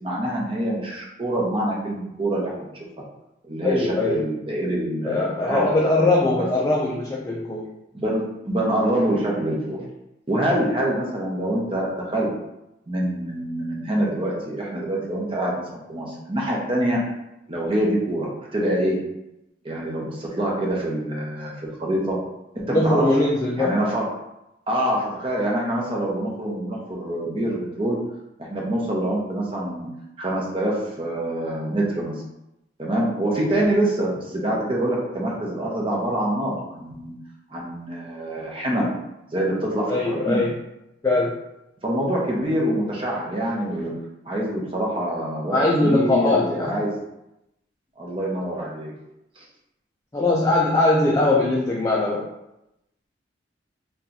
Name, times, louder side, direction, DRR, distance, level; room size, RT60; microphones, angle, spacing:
voice 1, 0.0-2.7 3.5-6.5 7.9-9.8 10.3-12.3 12.9-15.6 15.9-17.0 17.5-19.0 19.6-22.2 22.5-23.1 23.6-24.0 24.7-28.0 28.4-29.9 30.2-32.1 32.8-37.2 37.5-38.9 39.3-40.4 41.8-43.9 44.3-46.9 48.0-48.9 49.4-49.5, right 1 dB, 30° right, -3 dB, 0.7 m, -25 dB
voice 2, 3.6-4.2 5.0-7.7 22.7-23.7 39.9-40.5 41.0-41.3 45.5-46.7 50.1-52.3, left 2 dB, 20° left, -3 dB, 0.3 m, -21 dB
2.9 x 2.3 x 3.8 m, 0.88 s
head